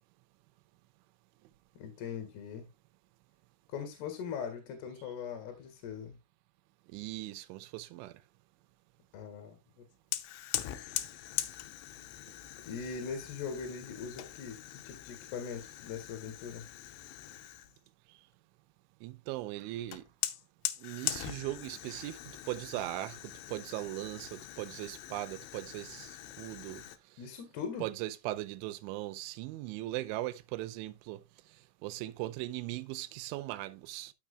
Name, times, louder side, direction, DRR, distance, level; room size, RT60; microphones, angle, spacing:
voice 1, 1.8-2.7 3.7-6.2 9.1-9.6 12.7-14.6 14.8-16.6 21.9-22.0 27.2-27.8, left 6 dB, 65° left, 3.4 m, -40 dB
voice 2, 6.9-8.1 19.0-20.0 20.8-22.2 22.5-23.2 23.5-26.8 27.8-31.2 31.8-34.1, right 16 dB, 85° right, 2.9 m, -39 dB
Fire, 10.1-17.8 19.9-27.0, left 14 dB, 80° left, 2.8 m, -42 dB
13.5 x 6.2 x 2.4 m
omnidirectional pair, 5.7 m